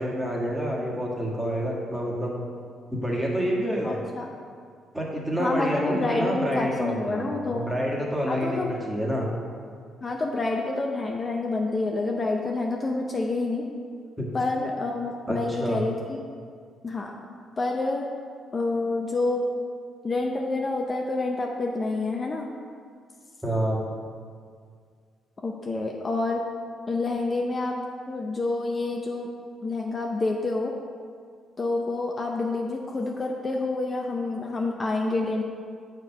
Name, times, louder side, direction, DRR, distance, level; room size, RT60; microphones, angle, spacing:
voice 1, 0.0-2.3 2.9-4.0 4.9-9.3 14.2-14.3 15.3-15.8 23.4-23.8, equal, 10° right, -3 dB, 1.6 m, -28 dB
voice 2, 3.8-4.3 5.4-7.7 8.3-8.7 10.0-13.6 14.3-16.2 16.8-17.1 17.6-18.1 18.5-19.5 20.0-22.5 25.4-26.4 26.9-27.7 28.1-29.3 29.6-30.7 31.6-35.4, left 2 dB, 35° left, 0 dB, 0.6 m, -28 dB
6.9 x 4.5 x 5.7 m, 2.1 s
cardioid pair, 90°, 0 cm